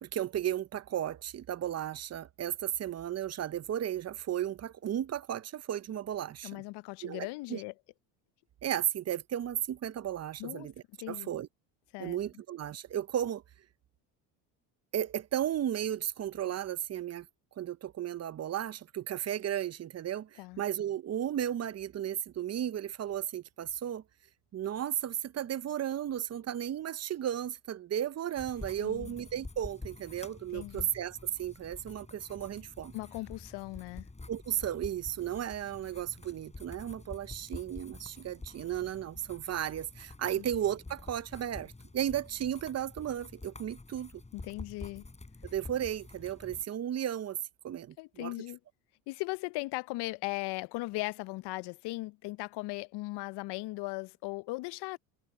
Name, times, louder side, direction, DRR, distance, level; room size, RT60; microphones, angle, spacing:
voice 1, 0.0-6.6 7.0-7.6 8.6-10.7 11.1-11.5 12.0-13.4 14.9-17.3 17.6-24.0 24.5-32.9 34.3-44.2 45.4-47.4 47.6-48.3, right 10 dB, 35° right, 0.7 m, -34 dB
voice 2, 6.4-7.7 10.4-10.7 11.0-11.3 11.9-12.2 20.4-20.6 28.8-29.2 30.5-30.9 32.9-34.1 40.4-40.5 44.3-45.0 48.0-48.6 49.1-55.0, left 22 dB, 60° left, 0.6 m, -38 dB
sound 1, 28.4-46.6, left 3 dB, 15° left, 7.3 m, -48 dB
supercardioid pair, 85°, 46 cm